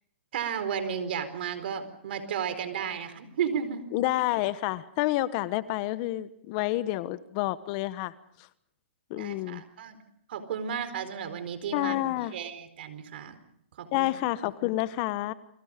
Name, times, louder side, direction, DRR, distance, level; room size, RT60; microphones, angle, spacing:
voice 1, 0.3-3.8 9.1-10.0 10.3-12.0 12.3-13.4 13.8-14.1, right 7 dB, 60° right, 11 dB, 4.3 m, -33 dB
voice 2, 3.9-8.1 9.1-9.6 11.7-12.3 13.9-15.3, left 16 dB, 40° left, 15 dB, 1.2 m, -29 dB
29.0 x 23.5 x 5.2 m, 0.71 s
hypercardioid pair, 140°, 6 cm